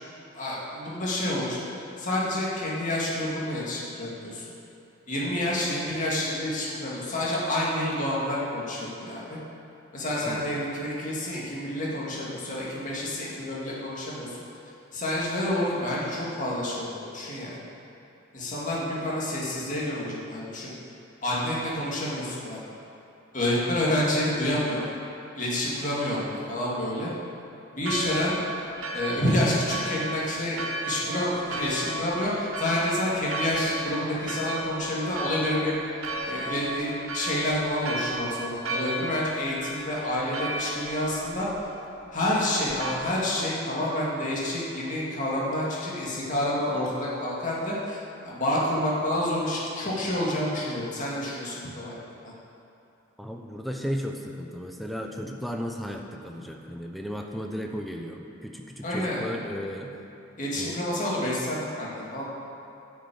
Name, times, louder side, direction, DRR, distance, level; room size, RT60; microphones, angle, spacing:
voice 1, 0.3-1.7 2.0-4.4 5.1-9.4 9.9-14.3 14.9-17.6 18.3-20.7 21.2-22.6 23.3-24.8 25.4-27.1 27.7-28.4 28.9-35.7 36.2-41.5 42.1-48.0 48.2-52.0 58.8-59.2 60.4-62.2, left 1 dB, 40° left, -5 dB, 2.2 m, -28 dB
voice 2, 10.2-10.6 53.2-60.0 60.5-60.8, equal, ahead, 2 dB, 0.7 m, -35 dB
Church bell, 27.8-42.9, right 2 dB, 90° right, 1.0 m, -35 dB
9.6 x 6.4 x 8.7 m, 2.8 s
head